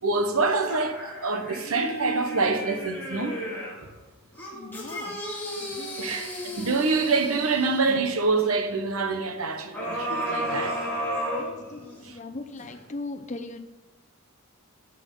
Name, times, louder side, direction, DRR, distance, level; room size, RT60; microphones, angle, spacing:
voice 1, 0.0-3.4 6.0-11.2 12.0-12.2, right 3 dB, 75° right, 1.1 m, -26 dB
sound 1, 0.7-3.8 4.3-8.0 9.7-12.1 12.6-12.7, equal, 10° left, 2.3 m, -33 dB
voice 2, 4.5-5.2 5.6-6.2 11.4-13.6, left 2 dB, 35° left, 0.7 m, -39 dB
16.5 x 6.2 x 3.8 m
head